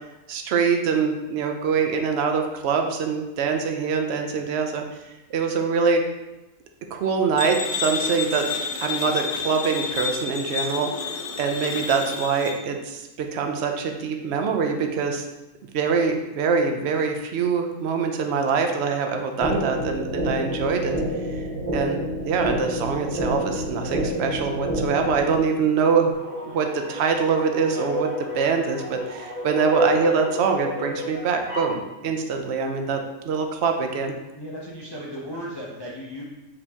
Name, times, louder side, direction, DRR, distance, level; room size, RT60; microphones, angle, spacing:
voice 1, 0.3-4.8 5.3-6.0 6.9-8.5 8.8-10.9 11.4-15.3 15.7-20.9 21.3-21.5 21.7-26.2 26.5-28.1 28.3-33.0 33.2-34.1, right 5 dB, 65° right, 4 dB, 0.7 m, -24 dB
sound 1, 7.4-12.6, left 6 dB, 75° left, 1.1 m, -30 dB
sound 2, 19.4-25.4, equal, 35° right, 1.1 m, -28 dB
sound 3, 26.1-31.8, equal, 10° right, 1.2 m, -31 dB
voice 2, 34.3-36.2, equal, 40° left, -5 dB, 0.3 m, -36 dB
4.9 x 2.9 x 3.5 m, 1.0 s
omnidirectional pair, 1.5 m